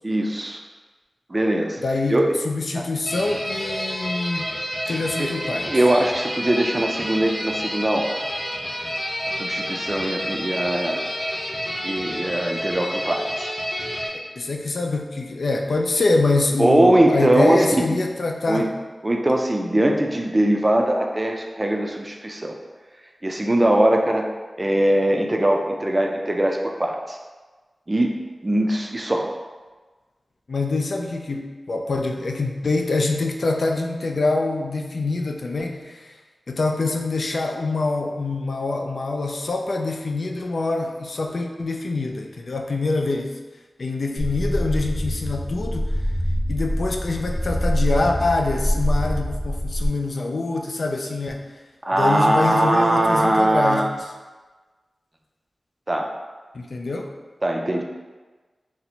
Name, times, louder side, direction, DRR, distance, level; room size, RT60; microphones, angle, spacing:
voice 1, 0.0-0.6 1.3-1.8 2.1-2.4 2.8-2.9 5.2-5.3 5.6-8.2 9.3-11.0 11.8-13.5 16.6-17.7 18.5-18.7 19.0-22.5 23.2-24.3 24.6-27.2 27.9-29.3 51.8-53.9 55.9-56.1 57.4-57.8, right 1 dB, 25° right, 2 dB, 0.4 m, -21 dB
voice 2, 1.8-4.6 4.9-5.7 14.1-18.7 30.5-36.1 36.5-43.4 43.8-46.0 46.5-51.4 51.9-53.8 56.5-57.1, left 3 dB, 65° left, 2 dB, 0.3 m, -25 dB
sound 1, 3.1-14.1, equal, 25° left, 0.9 m, -29 dB
sound 2, 44.2-49.9, equal, 5° right, 0.8 m, -25 dB
4.1 x 2.1 x 2.8 m, 1.3 s
wide cardioid pair, 80°, 0 cm